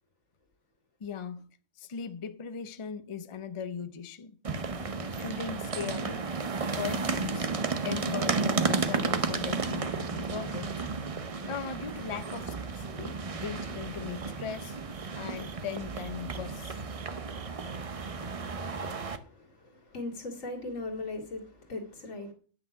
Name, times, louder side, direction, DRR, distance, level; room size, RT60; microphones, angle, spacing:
voice 1, 1.0-1.4 1.8-4.4 5.1-6.3 6.7-7.5 7.8-10.7 11.5-14.8 15.1-16.8, left 7 dB, 45° left, 0.4 m, -39 dB
sound 1, 4.4-19.2, right 4 dB, 35° right, 0.6 m, -33 dB
voice 2, 18.9-22.3, left 2 dB, 70° left, 2.6 m, -39 dB
9.8 x 6.0 x 5.8 m
omnidirectional pair, 1.4 m